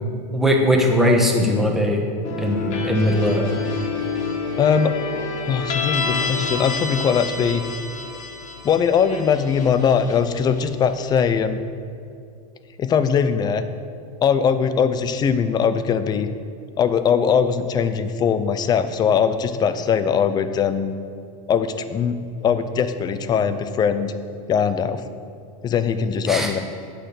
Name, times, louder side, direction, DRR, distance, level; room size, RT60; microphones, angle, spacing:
voice 1, 0.3-2.0 2.4-3.5 26.3-26.5, equal, ahead, 0 dB, 1.1 m, -19 dB
sound 1, 2.2-11.1, left 5 dB, 35° left, 1.5 m, -28 dB
voice 2, 4.6-4.9 5.5-7.6 8.6-11.6 12.8-13.6 14.2-16.3 16.8-20.9 21.5-24.1 24.5-25.0 25.6-26.6, left 7 dB, 20° left, 11 dB, 0.4 m, -20 dB
9.1 x 5.8 x 6.7 m, 2.4 s
supercardioid pair, 140°, 20 cm